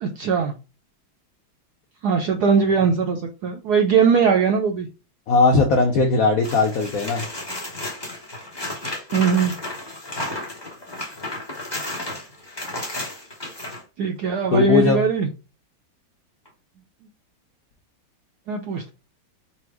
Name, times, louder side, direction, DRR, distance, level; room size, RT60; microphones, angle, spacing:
voice 1, 0.0-0.5 2.0-4.9 9.1-9.5 14.0-15.3 18.5-18.9, right 6 dB, 80° right, 3 dB, 0.9 m, -20 dB
voice 2, 5.3-7.2 14.5-15.0, left 3 dB, 80° left, 3 dB, 0.7 m, -18 dB
sound 1, 6.4-13.8 16.5-16.6, left 1 dB, 15° left, 0.9 m, -33 dB
4.3 x 2.1 x 4.5 m, 0.31 s
omnidirectional pair, 2.2 m